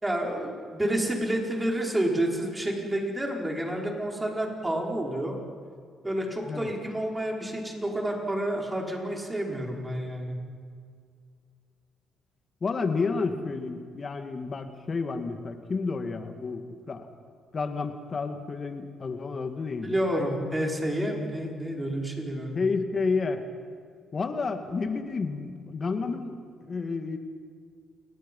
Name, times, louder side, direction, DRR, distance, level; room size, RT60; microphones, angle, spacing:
voice 1, 0.0-5.4 6.0-10.4 19.8-22.6, right 1 dB, 15° right, 0 dB, 5.1 m, -29 dB
voice 2, 12.6-17.1 17.5-20.0 22.5-23.4 24.1-27.2, left 4 dB, 40° left, 6 dB, 2.1 m, -30 dB
29.0 x 20.0 x 5.6 m, 2.1 s
cardioid pair, 90°, 0 cm